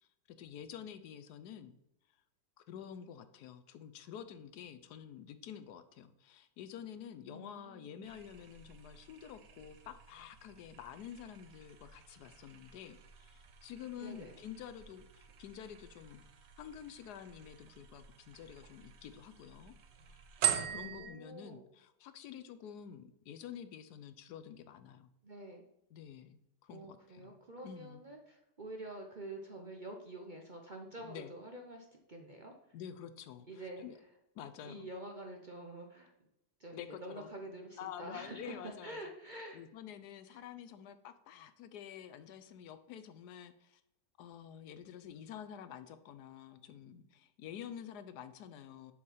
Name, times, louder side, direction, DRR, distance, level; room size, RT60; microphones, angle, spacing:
voice 1, 0.0-1.8 2.6-19.7 20.1-25.1 25.9-27.3 27.6-28.0 31.0-31.3 32.7-34.0 34.3-34.9 36.7-37.3 37.8-39.0 39.5-43.8 44.2-48.9, left 9 dB, 75° left, 11 dB, 1.1 m, -49 dB
voice 2, 7.3-8.1 14.0-14.4 20.7-21.6 25.2-25.6 26.7-32.5 33.5-33.8 34.6-36.1 36.6-39.6 40.3-40.4 40.7-40.8, right 1 dB, 40° right, 2 dB, 0.7 m, -47 dB
sound 1, 8.0-21.1, right 10 dB, 90° right, 1.4 m, -43 dB
7.2 x 4.7 x 5.5 m, 0.82 s
omnidirectional pair, 1.8 m